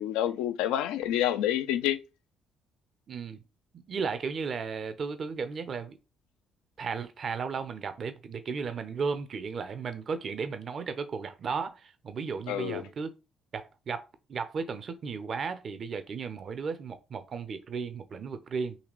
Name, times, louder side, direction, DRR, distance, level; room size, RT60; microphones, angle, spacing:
voice 1, 0.0-2.0 12.5-12.8, left 12 dB, 75° left, 0.3 m, -28 dB
voice 2, 3.1-3.4 3.9-6.0 6.8-13.1 13.5-18.8, right 5 dB, 50° right, 0.5 m, -35 dB
4.0 x 2.8 x 3.0 m
hypercardioid pair, 45°, 0 cm